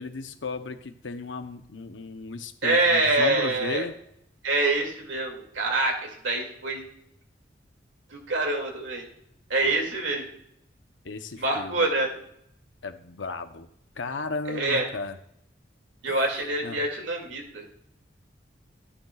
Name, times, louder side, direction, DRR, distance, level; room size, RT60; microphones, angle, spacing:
voice 1, 0.0-4.0 9.6-9.8 11.0-11.9 12.8-13.7 14.0-15.2 16.1-16.2 16.6-16.8, left 3 dB, 90° left, 8 dB, 0.8 m, -35 dB
voice 2, 2.6-3.8 4.4-6.8 8.1-9.1 9.5-10.3 11.4-12.1 14.5-14.9 16.0-17.6, right 2 dB, 90° right, 2 dB, 2.4 m, -25 dB
13.0 x 9.9 x 2.4 m, 0.73 s
head